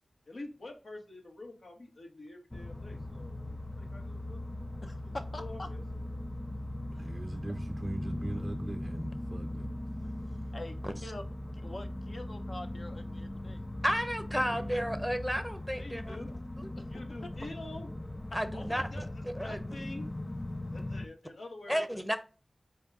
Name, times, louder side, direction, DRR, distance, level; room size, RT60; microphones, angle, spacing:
voice 1, 0.3-4.4 5.1-5.8 14.4-14.6 15.7-16.3 16.9-17.9 18.5-20.1 20.7-21.8, left 2 dB, 80° left, 1.3 m, -47 dB
sound 1, 2.5-21.1, left 1 dB, 20° left, 0.4 m, -39 dB
voice 2, 4.8-5.7 6.9-7.1 10.0-10.1 10.5-10.8 11.0-11.2 11.6-13.6 16.8-16.9 18.3-18.6, left 1 dB, 55° left, 0.8 m, -44 dB
voice 3, 6.8-9.7 10.2-10.5 18.7-19.0, right 1 dB, 45° right, 0.5 m, -41 dB
voice 4, 13.8-16.2 16.6-16.7 18.3-18.9 19.4-19.6 21.7-22.2, equal, 5° left, 0.8 m, -32 dB
4.5 x 2.7 x 3.5 m
cardioid pair, 50°, 0 cm